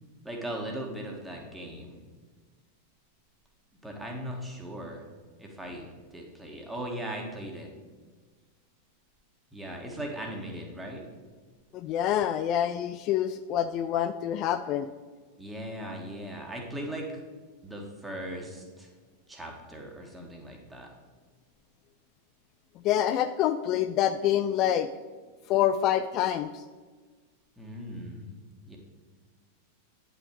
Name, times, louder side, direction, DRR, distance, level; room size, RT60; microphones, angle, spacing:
voice 1, 0.2-2.0 3.8-5.1 5.4-7.7 9.5-11.0 15.4-17.2 17.6-18.9 19.3-20.9 27.6-28.3 28.6-28.8, right 1 dB, 5° right, 0 dB, 1.7 m, -38 dB
voice 2, 11.7-14.9 22.8-24.9 25.5-26.6, left 11 dB, 40° left, 10 dB, 0.3 m, -26 dB
9.6 x 6.0 x 4.7 m, 1.4 s
figure-of-eight pair, 90°, 0 cm